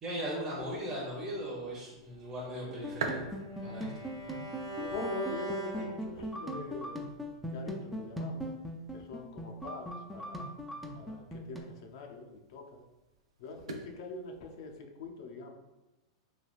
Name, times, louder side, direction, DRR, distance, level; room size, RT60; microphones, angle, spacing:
voice 1, 0.0-3.3 3.6-3.9, equal, 20° right, -6 dB, 0.7 m, -38 dB
sound 1, 0.6-14.7, right 4 dB, 80° right, 0.4 m, -48 dB
Bowed string instrument, 2.4-6.6, right 2 dB, 60° right, 0.8 m, -42 dB
sound 2, 2.7-11.6, equal, ahead, 0.3 m, -40 dB
voice 2, 4.6-7.2 7.4-8.5 8.9-10.5 10.9-12.8 13.4-15.5, left 4 dB, 65° left, 2 dB, 0.5 m, -43 dB
3.2 x 2.3 x 2.3 m, 1.1 s
hypercardioid pair, 125°, 3 cm